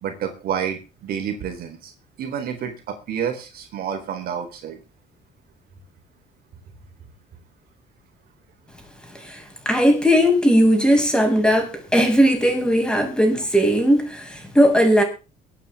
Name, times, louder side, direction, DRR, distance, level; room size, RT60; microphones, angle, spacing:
voice 1, 0.0-1.9 2.2-4.8, right 8 dB, 65° right, 4.2 m, -29 dB
voice 2, 9.3-15.0, equal, 5° left, 6.9 m, -18 dB
23.5 x 9.3 x 3.7 m
cardioid pair, 110°, 17 cm